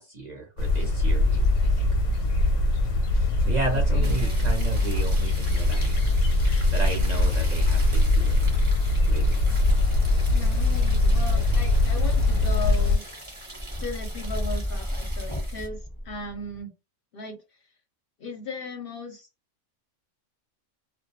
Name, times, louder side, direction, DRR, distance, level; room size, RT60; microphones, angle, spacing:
voice 1, 0.0-1.9 3.1-6.0 6.7-8.6 9.1-9.4, right 3 dB, 50° right, 1 dB, 0.6 m, -34 dB
sound 1, 0.6-13.0, left 2 dB, 85° left, 1.0 m, -22 dB
voice 2, 3.7-4.5 10.3-13.0 13.8-15.8 16.0-16.7 17.1-17.4 18.2-19.3, left 2 dB, 60° left, 4 dB, 0.6 m, -36 dB
sound 2, 4.0-15.7, right 1 dB, 25° right, 0.9 m, -41 dB
sound 3, 11.5-16.6, left 1 dB, 10° left, 0.6 m, -35 dB
2.2 x 2.1 x 2.7 m, 0.26 s
omnidirectional pair, 1.3 m